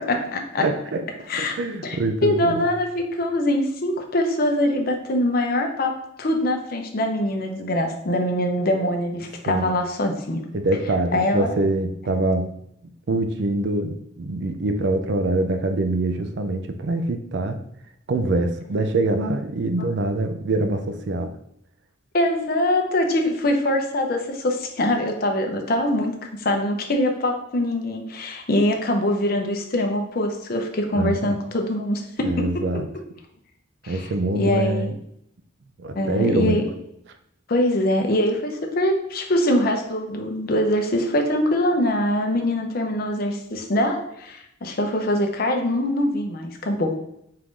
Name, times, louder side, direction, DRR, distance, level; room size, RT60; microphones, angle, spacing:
voice 1, 0.1-0.6 1.3-1.5 1.8-10.4 11.1-11.6 12.1-12.2 22.1-32.5 33.8-34.1 34.3-34.9 35.9-36.6 37.5-47.0, left 1 dB, 50° left, 3 dB, 0.6 m, -23 dB
voice 2, 0.6-1.0 1.3-2.6 9.4-9.7 10.5-12.6 13.1-17.6 18.1-21.3 30.9-31.3 32.2-32.9 33.9-34.9 35.8-36.6, right 2 dB, 60° right, 7 dB, 0.4 m, -24 dB
4.5 x 2.6 x 3.6 m, 0.75 s
head